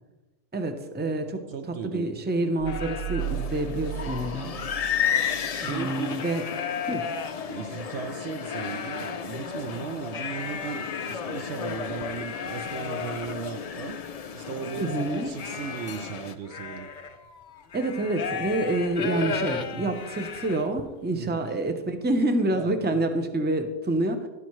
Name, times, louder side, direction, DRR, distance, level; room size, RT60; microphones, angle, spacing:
voice 1, 0.5-1.4 1.9-4.5 5.6-6.4 6.9-7.0 14.8-15.3 17.7-24.3, right 2 dB, 10° right, 0.6 m, -27 dB
voice 2, 1.5-2.2 5.6-6.2 7.5-14.0 14.3-16.9 19.2-19.5 19.7-20.0 21.2-21.4 22.5-22.8, right 7 dB, 65° right, 0.8 m, -37 dB
sound 1, 2.6-3.3 3.8-3.9 4.2-7.8 8.3-9.3 10.0-20.9, left 6 dB, 50° left, 0.6 m, -36 dB
sound 2, 2.6-5.6, right 10 dB, 85° right, 1.0 m, -35 dB
sound 3, 3.2-16.4, left 7 dB, 80° left, 0.3 m, -33 dB
12.0 x 11.0 x 3.1 m
omnidirectional pair, 1.3 m